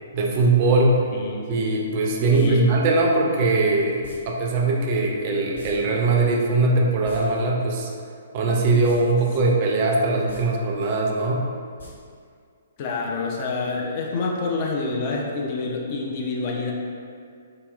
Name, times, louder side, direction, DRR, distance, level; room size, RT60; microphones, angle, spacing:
voice 1, 0.1-1.0 1.5-7.9 8.3-11.5, right 3 dB, 40° right, 0 dB, 0.4 m, -21 dB
voice 2, 1.1-1.5 2.3-2.7 12.8-16.7, left 3 dB, 35° left, -1 dB, 0.4 m, -27 dB
sound 1, 2.3-2.5 4.0-4.2 5.5-5.7 6.0-6.1 6.9-7.2 8.8-9.0 9.3-9.4 10.2-10.4 11.8-11.9 12.2-12.3, left 2 dB, 70° left, 1.1 m, -41 dB
3.7 x 2.9 x 2.3 m, 2.3 s
figure-of-eight pair, 120°, 0 cm